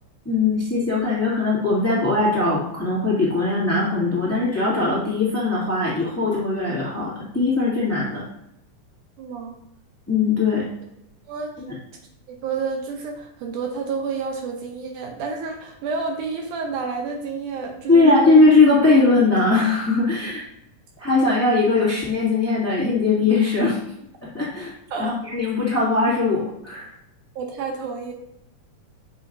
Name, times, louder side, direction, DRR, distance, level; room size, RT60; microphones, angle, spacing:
voice 1, 0.2-8.2 10.1-10.6 11.6-11.7 17.9-20.4 21.0-23.8 24.3-24.7 25.0-26.9, left 3 dB, 5° left, -8 dB, 1.5 m, -20 dB
voice 2, 9.2-9.5 11.3-11.5 12.3-18.4 24.9-25.1 27.4-28.1, right 5 dB, 75° right, 2 dB, 2.1 m, -29 dB
7.7 x 5.5 x 2.6 m, 0.80 s
omnidirectional pair, 3.8 m